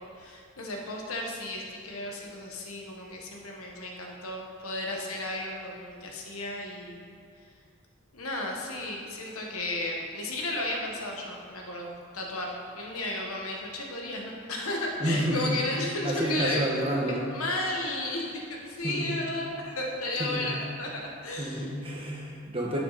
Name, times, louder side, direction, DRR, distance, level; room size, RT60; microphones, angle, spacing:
voice 1, 0.0-7.1 8.1-16.6 17.1-20.9 21.2-21.7, left 1 dB, 85° left, 0 dB, 1.5 m, -34 dB
voice 2, 15.0-15.6 16.0-17.3 18.8-19.1 20.2-20.5 21.4-22.8, right 1 dB, 25° right, -3 dB, 1.4 m, -29 dB
11.0 x 6.6 x 4.2 m, 2.4 s
head